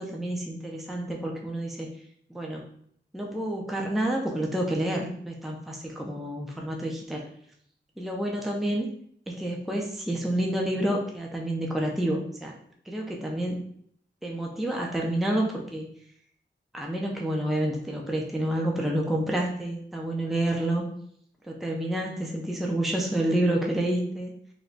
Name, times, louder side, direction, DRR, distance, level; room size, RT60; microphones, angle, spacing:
voice 1, 0.0-1.9 2.3-2.6 3.1-7.2 8.0-8.9 9.3-12.6 12.9-13.6 14.2-15.9 16.7-20.8 21.5-24.3, right 1 dB, ahead, 0 dB, 0.5 m, -29 dB
3.2 x 2.3 x 3.8 m, 0.65 s
wide cardioid pair, 120°, 20 cm